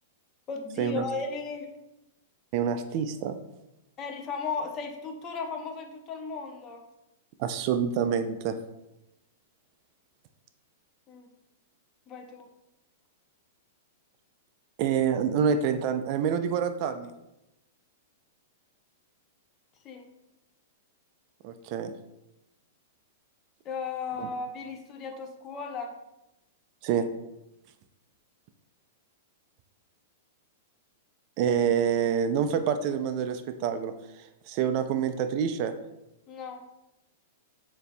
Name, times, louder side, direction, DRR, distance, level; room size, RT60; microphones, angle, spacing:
voice 1, 0.5-1.7 4.0-6.8 11.1-11.3 12.1-12.5 19.8-20.1 23.6-26.0 36.3-36.6, left 4 dB, 30° left, 4 dB, 0.6 m, -36 dB
voice 2, 2.5-3.4 7.4-8.6 14.8-17.1 21.4-21.9 24.2-24.3 26.8-27.1 31.4-35.7, right 7 dB, 45° right, 9 dB, 0.3 m, -27 dB
6.7 x 2.6 x 2.2 m, 0.91 s
hypercardioid pair, 125°, 0 cm